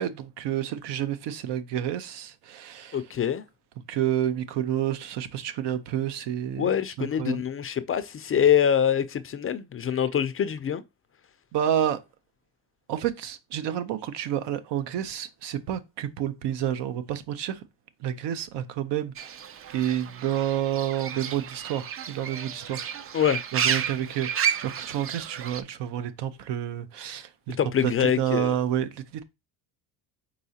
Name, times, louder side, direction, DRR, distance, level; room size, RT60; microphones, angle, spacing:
voice 1, 0.0-3.0 3.9-7.4 11.5-12.0 12.9-17.6 18.0-19.3 19.7-23.1 23.5-27.6 27.8-29.2, right 10 dB, 70° right, 0.7 m, -29 dB
voice 2, 2.9-3.4 6.6-10.8 23.1-23.4 27.6-28.6, left 9 dB, 30° left, 0.4 m, -24 dB
Fowl / Bird, 19.2-25.6, right 8 dB, 35° right, 0.4 m, -32 dB
4.7 x 3.8 x 2.7 m
supercardioid pair, 85°, 43 cm